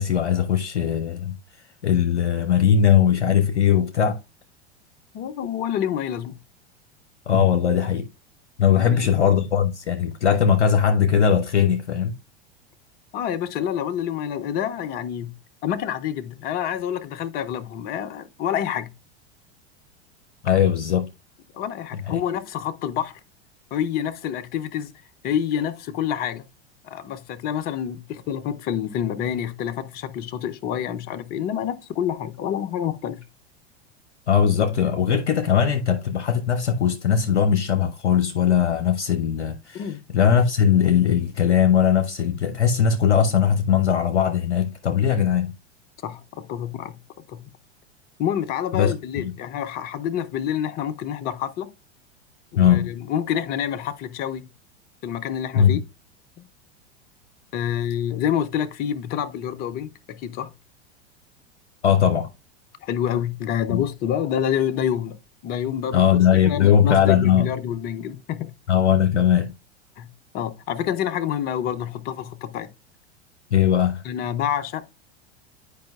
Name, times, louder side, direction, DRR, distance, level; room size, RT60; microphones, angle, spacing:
voice 1, 0.0-1.4 1.8-4.2 7.3-8.1 8.6-12.1 20.4-21.1 22.1-22.2 34.3-45.5 48.7-49.3 52.6-52.9 55.6-55.8 61.8-62.3 63.7-63.8 65.9-67.5 68.7-69.5 73.5-74.0, left 8 dB, 70° left, 0.7 m, -20 dB
voice 2, 5.1-6.4 8.7-9.1 13.1-15.3 15.6-18.9 21.5-23.2 23.7-24.9 25.2-26.4 26.8-33.2 39.7-40.0 46.0-47.0 47.3-47.4 48.2-51.7 52.5-54.4 55.0-55.8 56.4-56.5 57.5-60.5 62.8-65.2 65.4-68.5 70.0-70.1 70.3-72.7 74.0-75.1, left 9 dB, 30° left, 0.6 m, -27 dB
10.5 x 4.8 x 2.3 m
figure-of-eight pair, 85°, 34 cm